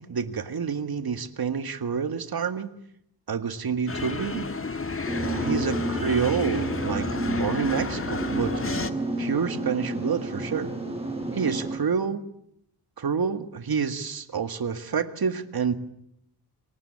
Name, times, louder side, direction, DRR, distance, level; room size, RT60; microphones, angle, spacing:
voice 1, 0.0-2.7 3.3-4.5 5.2-8.6 9.2-10.7 11.3-12.2 13.0-15.8, right 6 dB, 70° right, 9 dB, 2.0 m, -28 dB
sound 1, 3.9-8.9, left 4 dB, 35° left, 1.7 m, -31 dB
sound 2, 5.1-11.8, right 2 dB, 15° right, 7.8 m, -31 dB
27.0 x 24.0 x 8.7 m, 0.74 s
wide cardioid pair, 80°, 38 cm